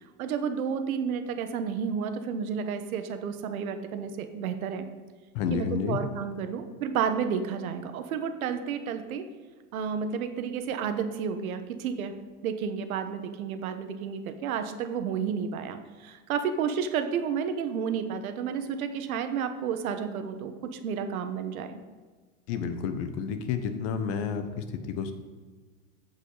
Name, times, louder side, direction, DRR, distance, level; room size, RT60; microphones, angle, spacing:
voice 1, 0.2-4.8 5.5-9.2 9.7-12.1 12.4-21.8, right 7 dB, 85° right, 8 dB, 1.2 m, -31 dB
voice 2, 5.3-6.0 22.5-25.1, left 6 dB, 55° left, 8 dB, 1.1 m, -30 dB
15.0 x 5.6 x 4.0 m, 1.4 s
supercardioid pair, 140°, 41 cm